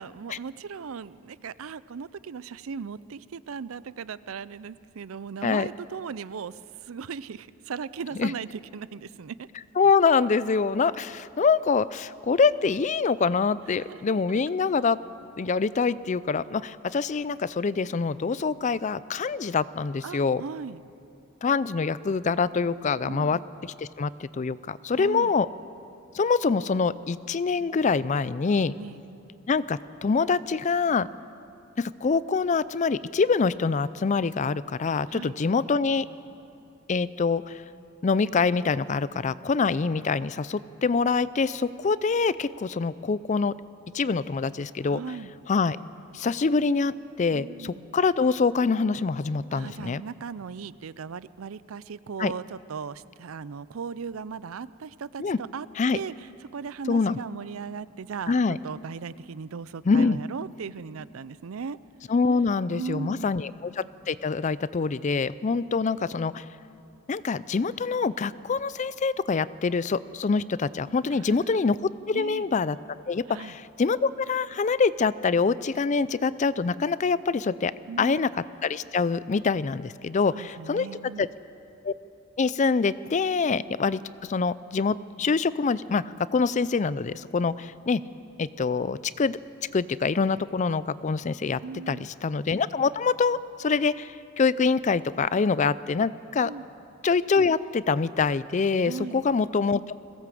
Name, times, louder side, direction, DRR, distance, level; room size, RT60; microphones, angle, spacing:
voice 1, 0.0-9.5 13.9-14.4 20.0-20.8 23.0-23.5 24.9-25.3 28.7-29.0 35.1-35.4 44.9-45.3 47.3-47.8 49.5-55.7 55.9-61.8 62.7-63.3 71.1-71.7 72.1-72.5 73.3-73.6 77.9-78.3 80.3-81.3 91.6-92.1 96.4-96.7 98.8-99.2, right 6 dB, 80° right, 18 dB, 0.5 m, -38 dB
voice 2, 9.8-15.0 15.4-20.4 21.4-25.5 26.1-28.7 29.5-31.1 31.8-36.1 36.9-37.6 38.0-43.5 43.9-45.0 45.5-45.8 46.1-50.0 52.2-52.3 55.2-55.4 55.8-56.0 56.9-57.2 58.3-58.6 59.9-60.2 62.1-66.5 67.1-71.8 72.1-72.8 73.1-77.7 78.0-78.3 78.6-80.9 81.2-81.3 81.8-81.9 82.4-84.0 84.3-86.0 86.3-88.0 88.4-89.4 89.7-91.6 91.9-96.5 97.0-99.9, left 4 dB, 35° left, 17 dB, 0.4 m, -25 dB
21.5 x 17.0 x 7.7 m, 2.6 s
head